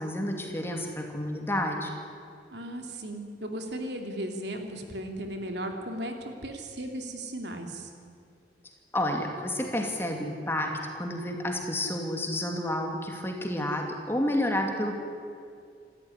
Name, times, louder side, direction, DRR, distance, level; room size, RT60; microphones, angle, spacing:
voice 1, 0.0-1.9 8.9-15.0, left 1 dB, 15° left, 2 dB, 2.5 m, -30 dB
voice 2, 2.5-7.9, right 1 dB, 70° right, 4 dB, 2.8 m, -36 dB
27.0 x 14.0 x 9.8 m, 2.3 s
head